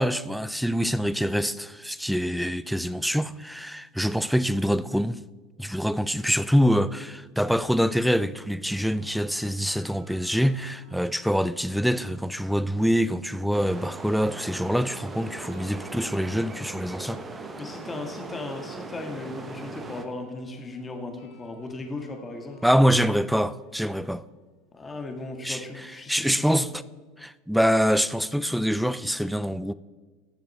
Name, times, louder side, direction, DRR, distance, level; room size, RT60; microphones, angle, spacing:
voice 1, 0.0-5.2 5.6-17.2 22.6-24.2 25.4-26.7 27.2-29.7, equal, ahead, 0.4 m, -25 dB
sound 1, 8.5-12.7 13.9-25.8, left 1 dB, 75° left, 1.6 m, -55 dB
sound 2, 13.5-20.0, right 3 dB, 20° right, 1.0 m, -40 dB
voice 2, 17.0-23.0 24.7-26.7, left 2 dB, 20° left, 1.6 m, -37 dB
14.0 x 6.9 x 3.3 m
hypercardioid pair, 80°, 0 cm